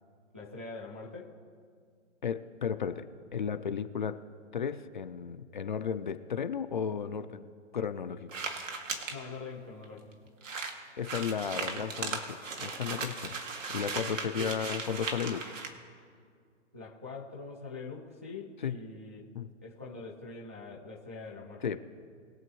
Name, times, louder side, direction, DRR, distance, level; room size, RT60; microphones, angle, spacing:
voice 1, 0.3-1.4 9.1-10.1 14.4-14.6 16.7-19.2 19.6-21.6, left 4 dB, 10° right, -4 dB, 0.4 m, -43 dB
voice 2, 2.2-4.2 4.5-7.5 7.7-8.4 11.0-13.4 13.7-15.5 18.6-18.7 19.3-19.5 21.6-21.8, left 7 dB, 40° left, 11 dB, 0.5 m, -34 dB
sound 1, 8.3-9.1 9.8-9.9 10.1-10.2 10.4-15.7, right 4 dB, 90° right, 2.1 m, -37 dB
22.0 x 7.7 x 3.1 m, 2.1 s
hypercardioid pair, 165°, 37 cm